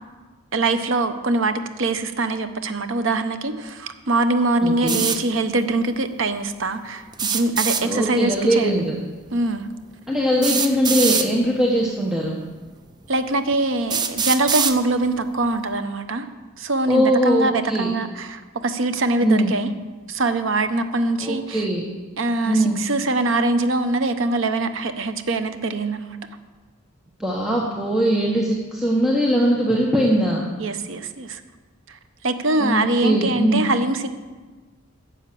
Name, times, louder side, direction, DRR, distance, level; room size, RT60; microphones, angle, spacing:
voice 1, 0.5-8.7 9.3-9.7 13.1-16.3 16.6-19.7 20.1-21.6 22.2-26.2 30.6-31.4 32.2-34.1, right 2 dB, 65° right, 9 dB, 0.8 m, -23 dB
voice 2, 4.6-5.0 7.8-9.0 10.1-12.4 16.9-17.9 19.2-19.5 21.2-21.8 22.4-22.8 27.2-30.4 32.6-33.7, equal, 5° right, -3 dB, 1.0 m, -21 dB
sound 1, 4.9-5.2 7.1-7.8 9.3-9.4 10.4-11.3 12.3-12.4 13.1-13.2 13.9-14.8, right 6 dB, 20° right, 0.5 m, -23 dB
10.0 x 7.3 x 7.5 m, 1.3 s
head